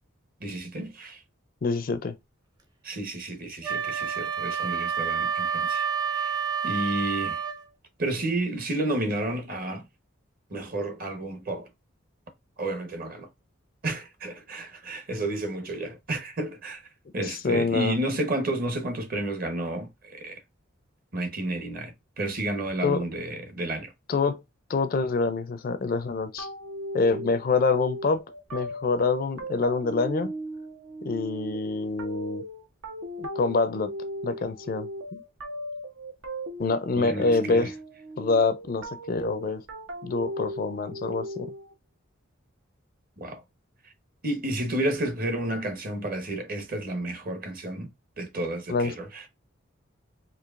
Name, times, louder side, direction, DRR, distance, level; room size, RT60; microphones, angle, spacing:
voice 1, 0.4-1.2 2.8-5.9 6.1-6.4 6.6-7.4 8.0-9.8 10.5-11.7 12.6-13.3 13.8-16.8 17.1-20.4 21.1-23.9 37.0-37.7 43.2-43.4 44.2-47.9 48.2-49.3, right 1 dB, 45° right, 0.9 m, -31 dB
voice 2, 1.6-2.2 17.2-18.0 22.8-23.0 24.1-24.4 24.7-26.5 26.9-28.2 28.5-30.3 31.0-32.4 33.2-33.9 34.2-35.2 36.6-37.7 38.2-39.6 40.0-41.5 48.7-48.9, left 4 dB, 45° left, 0.4 m, -26 dB
Wind instrument woodwind instrument, 3.6-7.6, right 6 dB, 20° right, 0.6 m, -28 dB
sound 1, 26.4-41.7, right 1 dB, 85° right, 0.9 m, -37 dB
4.5 x 2.7 x 2.4 m
head